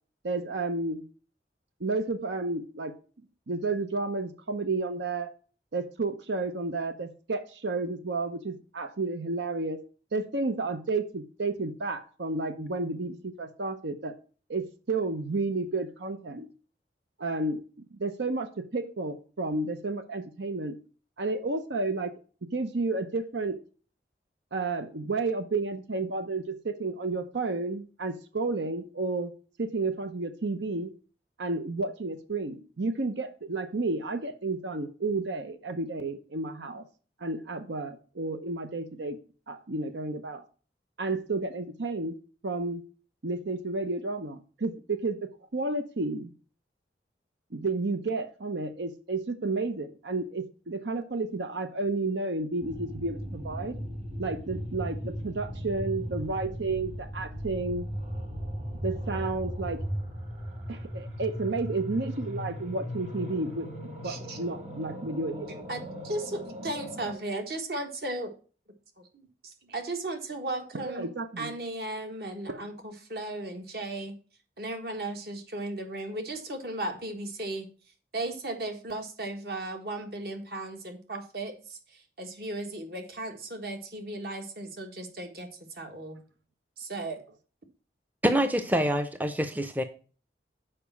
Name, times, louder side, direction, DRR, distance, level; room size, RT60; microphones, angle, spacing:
voice 1, 0.2-1.0 1.8-2.9 3.5-5.3 5.7-9.8 10.1-14.1 14.5-16.5 17.2-17.6 18.0-20.7 21.2-22.1 22.5-23.6 24.5-29.3 29.6-30.9 31.4-36.8 37.2-39.2 39.5-40.4 41.0-42.2 42.4-42.8 43.2-46.3 47.5-53.8 54.2-57.9 58.8-59.8 60.7-65.6 70.8-71.5 72.5-72.6, right 3 dB, 85° right, 0.8 m, -31 dB
sound 1, 52.6-67.1, equal, 40° right, 1.7 m, -37 dB
voice 2, 64.0-64.4 65.5-68.3 69.7-71.1 71.4-74.1 74.6-77.7 78.1-86.2 86.8-87.2, right 2 dB, 60° right, 1.5 m, -36 dB
voice 3, 88.2-89.8, equal, 10° right, 0.5 m, -26 dB
6.8 x 5.0 x 6.8 m
head